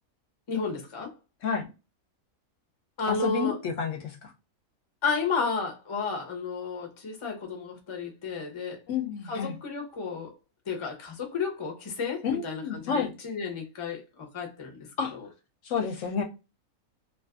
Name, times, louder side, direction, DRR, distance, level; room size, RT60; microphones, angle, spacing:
voice 1, 0.5-1.1 3.0-3.6 5.0-8.8 9.3-10.3 10.7-14.9 15.1-15.3, left 4 dB, 35° left, 0.5 m, -32 dB
voice 2, 3.1-4.3 8.9-9.5 12.2-13.1 15.0-15.1 15.6-16.2, left 6 dB, 70° left, 0.9 m, -30 dB
2.5 x 2.4 x 2.3 m
omnidirectional pair, 1.5 m